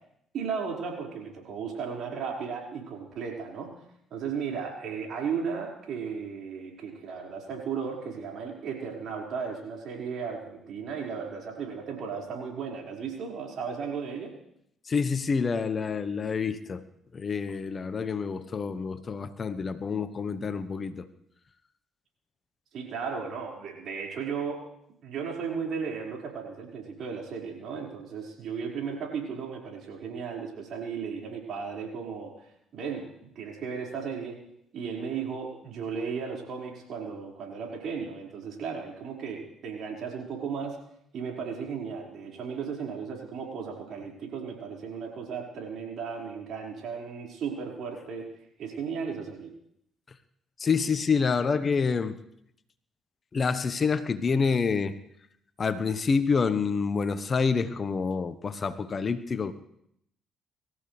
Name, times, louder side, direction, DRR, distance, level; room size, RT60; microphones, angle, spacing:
voice 1, 0.3-3.7 4.1-14.3 22.7-24.6 25.0-32.3 32.7-33.1 33.4-34.4 34.7-40.8 41.1-48.3 48.6-49.5, right 6 dB, 65° right, -1 dB, 5.2 m, -35 dB
voice 2, 14.9-16.8 17.1-21.1 50.6-52.2 53.3-54.9 55.6-59.5, left 5 dB, 45° left, 12 dB, 1.2 m, -27 dB
25.5 x 14.5 x 3.4 m, 0.74 s
hypercardioid pair, 50°, 0 cm